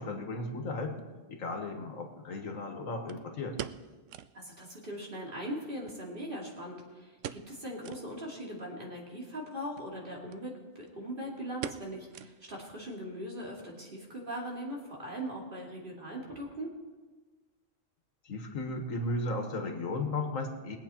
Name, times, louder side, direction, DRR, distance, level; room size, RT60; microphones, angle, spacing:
voice 1, 0.0-3.6 18.2-20.8, left 2 dB, 85° left, 4 dB, 1.8 m, -35 dB
sound 1, 1.0-1.1 3.1-4.4 4.7-4.8 5.1-5.2 5.9-6.7 7.2-7.6 7.8-8.1 8.6-8.7 9.6-9.9 10.3-10.4 10.7-11.1 11.6-12.7 13.0-13.1 13.7-14.0 14.3-14.4, right 10 dB, 75° right, 0.9 m, -43 dB
voice 2, 4.3-16.7, equal, 40° right, -3 dB, 2.8 m, -40 dB
21.0 x 8.5 x 4.4 m, 1.3 s
omnidirectional pair, 1.4 m